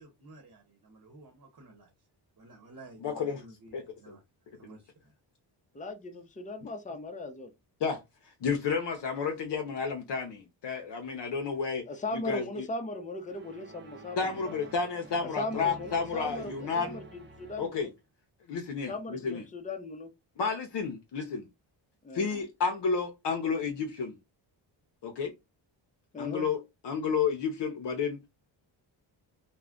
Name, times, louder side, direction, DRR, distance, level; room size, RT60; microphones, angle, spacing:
voice 1, 0.0-1.9 2.4-4.2 4.5-5.1, right 2 dB, 45° right, 1.0 m, -53 dB
voice 2, 3.0-3.4 3.7-3.8 4.1-4.2 7.8-8.0 8.2-11.8 12.1-12.7 14.2-17.0 17.6-17.9 18.5-19.4 20.4-21.5 22.1-24.2 25.0-25.3 26.2-28.2, left 5 dB, 60° left, 0.7 m, -31 dB
voice 3, 5.7-7.5 11.9-14.6 15.2-17.9 18.9-20.1 22.0-22.3 26.1-26.5, left 2 dB, 15° left, 0.6 m, -38 dB
sound 1, 13.3-17.9, right 1 dB, 25° right, 0.6 m, -48 dB
2.3 x 2.1 x 3.6 m
cardioid pair, 65°, 48 cm